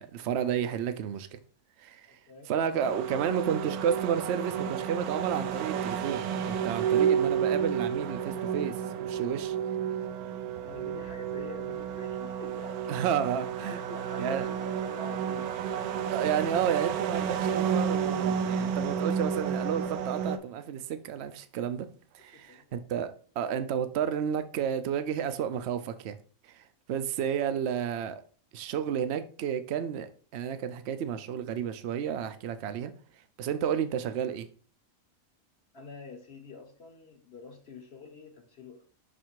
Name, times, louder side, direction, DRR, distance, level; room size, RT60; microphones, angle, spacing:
voice 1, 0.0-1.4 1.8-2.1 2.5-9.5 12.9-13.8 14.2-14.5 16.1-21.9 22.1-26.2 26.5-28.2 28.5-32.9 33.4-34.5, right 8 dB, 60° right, 0.8 m, -31 dB
voice 2, 2.1-2.5 10.6-13.0 13.6-15.5 22.2-22.9 35.7-38.9, left 3 dB, 50° left, 1.2 m, -46 dB
sound 1, 2.8-20.4, right 8 dB, 80° right, 1.1 m, -31 dB
6.5 x 3.4 x 4.6 m
omnidirectional pair, 1.5 m